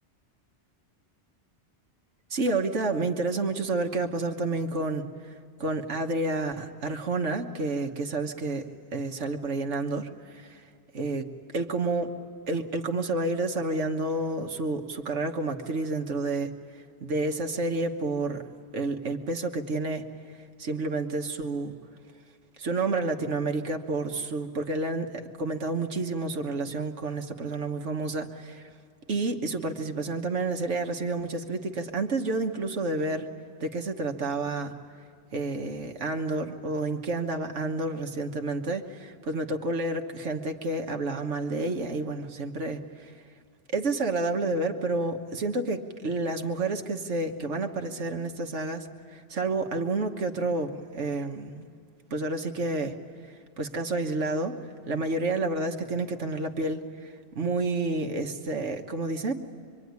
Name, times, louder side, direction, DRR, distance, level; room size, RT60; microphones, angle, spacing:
voice 1, 2.3-5.0 5.6-8.7 8.9-10.6 10.9-11.3 11.5-12.1 12.5-16.5 17.0-18.4 18.7-20.0 20.6-21.7 22.6-28.6 29.1-33.3 33.6-34.7 35.3-43.1 43.7-51.7 52.1-53.0 53.6-54.6 54.9-59.3, right 2 dB, 90° right, 5 dB, 1.6 m, -30 dB
26.0 x 24.0 x 9.5 m, 2.3 s
omnidirectional pair, 1.2 m